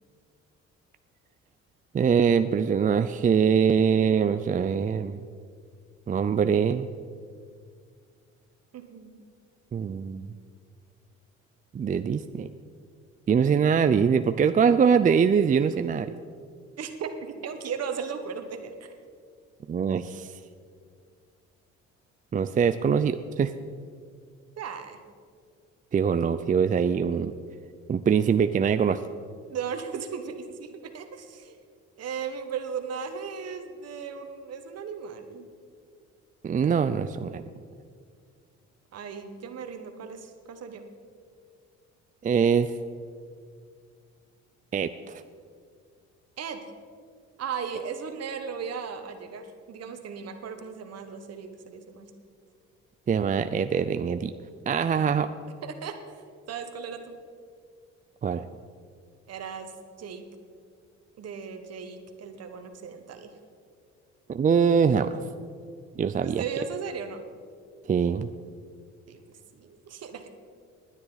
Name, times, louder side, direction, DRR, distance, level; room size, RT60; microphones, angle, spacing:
voice 1, 1.9-5.2 6.1-6.9 9.7-10.3 11.7-12.5 13.3-16.1 19.7-20.3 22.3-23.5 25.9-27.3 27.9-29.0 36.4-37.4 42.2-42.7 44.7-45.2 53.1-54.3 54.7-55.3 58.2-58.5 64.3-65.1 66.0-66.4 67.9-68.3, right 6 dB, 30° right, 10 dB, 0.4 m, -23 dB
voice 2, 8.7-9.2 13.3-13.6 16.8-18.9 24.6-25.0 29.5-35.5 38.9-40.8 46.4-46.6 47.4-52.1 54.9-55.2 55.6-57.2 59.3-59.7 60.0-60.2 61.2-63.3 66.2-67.2 69.1-70.3, right 6 dB, 55° right, 7 dB, 1.5 m, -37 dB
19.5 x 9.8 x 4.0 m, 2.1 s
supercardioid pair, 80°, 29 cm